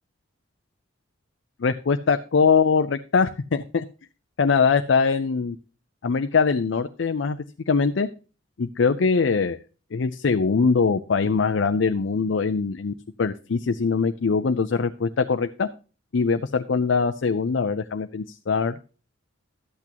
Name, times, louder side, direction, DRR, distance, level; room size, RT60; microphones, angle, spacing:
voice 1, 1.6-3.8 4.4-5.6 6.0-7.4 7.7-8.1 8.6-9.6 9.9-15.7 16.1-18.8, left 5 dB, 70° left, 9 dB, 0.5 m, -22 dB
12.0 x 8.3 x 2.9 m, 0.35 s
head